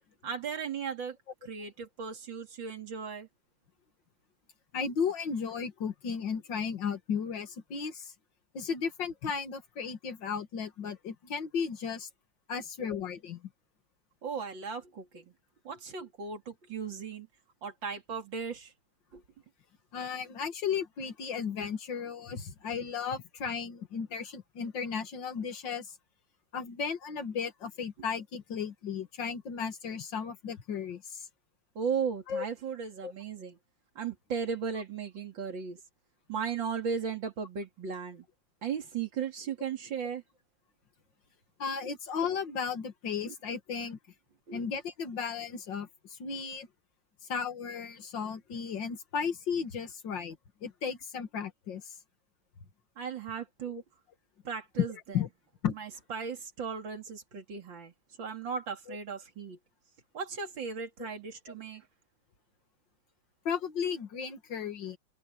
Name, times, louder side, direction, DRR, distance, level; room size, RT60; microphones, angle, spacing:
voice 1, 0.2-1.2 1.4-3.3 14.2-15.3 15.6-17.3 17.6-18.7 19.1-19.2 31.7-33.6 33.9-35.8 36.3-38.2 38.6-40.2 43.2-43.3 44.5-44.6 53.0-53.8 54.4-54.9 55.8-57.9 58.2-59.6 60.1-61.8, right 6 dB, 75° right, 3.3 m, -36 dB
voice 2, 4.7-8.1 8.5-12.1 12.5-13.5 19.9-25.9 26.5-31.3 32.3-32.5 33.0-33.1 41.6-44.0 44.5-46.7 47.3-51.9 53.7-53.8 54.8-55.3 55.6-55.8 58.9-59.0 61.0-61.1 61.5-61.6 63.4-65.0, left 6 dB, 70° left, 2.5 m, -35 dB
omnidirectional pair, 2.1 m